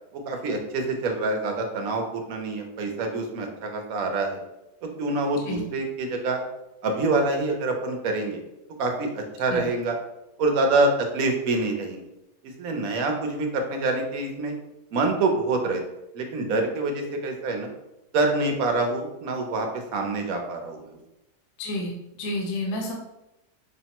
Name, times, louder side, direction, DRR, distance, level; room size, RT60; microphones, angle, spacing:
voice 1, 0.3-4.4 5.0-6.4 6.8-8.4 8.8-10.0 10.4-12.0 12.6-14.6 14.9-15.8 16.1-17.7 18.1-21.0, right 2 dB, 65° right, 3 dB, 1.0 m, -26 dB
voice 2, 21.6-22.9, left 1 dB, 70° left, 0 dB, 1.1 m, -30 dB
5.6 x 2.1 x 2.8 m, 0.91 s
omnidirectional pair, 1.8 m